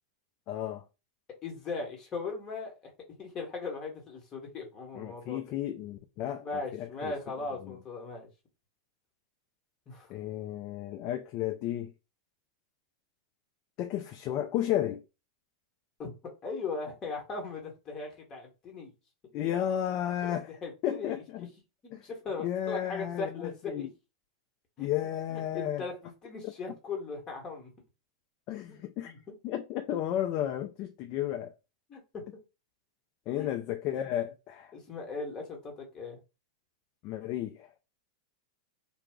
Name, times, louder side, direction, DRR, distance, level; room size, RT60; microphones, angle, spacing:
voice 1, 0.5-0.8 5.0-7.1 7.6-7.8 10.1-11.9 13.8-15.0 19.3-20.5 20.8-21.5 21.9-22.0 22.4-23.9 24.8-25.8 26.4-26.5 28.5-29.1 29.4-31.5 33.3-34.7 37.0-37.7, left 11 dB, 45° left, 0.3 m, -33 dB
voice 2, 1.4-2.9 3.2-5.4 6.4-8.3 9.9-10.1 16.0-16.1 16.4-18.9 20.2-21.5 21.8-23.9 24.8-24.9 25.3-27.7 28.7-29.4 31.9-32.3 33.3-33.5 34.7-36.2, left 4 dB, 30° left, 1.1 m, -39 dB
2.2 x 2.0 x 3.5 m
hypercardioid pair, 105°, 2 cm